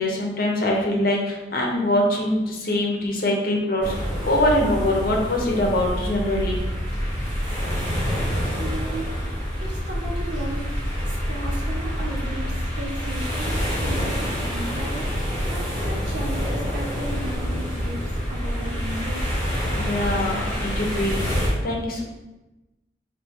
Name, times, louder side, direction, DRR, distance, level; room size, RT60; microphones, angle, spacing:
voice 1, 0.0-6.6 19.7-22.0, left 1 dB, 50° left, -1 dB, 0.8 m, -23 dB
sound 1, 3.8-21.5, equal, 5° left, 1.3 m, -27 dB
voice 2, 8.6-9.1 9.6-10.6 11.1-15.0 15.5-19.4, right 1 dB, 85° right, -4 dB, 1.1 m, -35 dB
4.1 x 2.7 x 3.5 m, 1.0 s
head